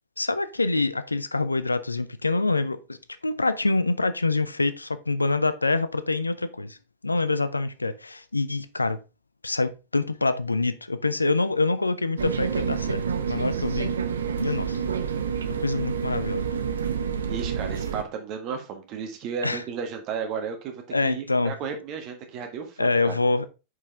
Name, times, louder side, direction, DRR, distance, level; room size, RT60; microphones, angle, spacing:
voice 1, 0.2-3.0 3.2-6.8 7.0-9.0 9.4-13.9 14.4-14.8 15.6-16.5 19.4-19.6 20.9-21.5 22.8-23.5, left 3 dB, 80° left, 0.5 m, -25 dB
sound 1, 12.2-18.0, right 7 dB, 70° right, 0.7 m, -28 dB
voice 2, 17.3-23.1, right 6 dB, 40° right, 1.8 m, -34 dB
6.4 x 5.3 x 3.5 m
figure-of-eight pair, 90°, 0 cm